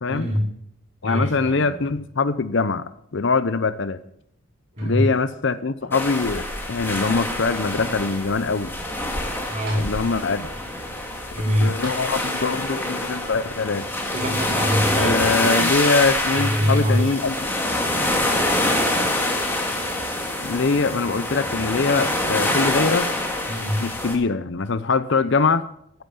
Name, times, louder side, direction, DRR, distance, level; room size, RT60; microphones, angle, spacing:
voice 1, 0.1-0.5 1.0-1.9 4.8-5.1 9.5-9.9 11.3-11.8 14.1-15.7 16.3-17.2 23.5-23.9, equal, 30° right, -1 dB, 3.8 m, -24 dB
voice 2, 1.0-2.8 3.1-4.0 4.8-8.7 9.7-10.5 11.4-13.9 14.9-17.3 20.4-23.1 23.8-25.7, left 4 dB, 55° left, 14 dB, 0.6 m, -23 dB
sound 1, 4.7-5.4 5.8-6.8 7.5-7.6 9.2-9.3 9.7-10.4 11.8-12.7 13.7-13.8, right 2 dB, 55° right, 6.1 m, -43 dB
sound 2, 5.9-24.2, left 1 dB, 10° left, 2.1 m, -25 dB
14.0 x 9.0 x 7.5 m, 0.72 s
head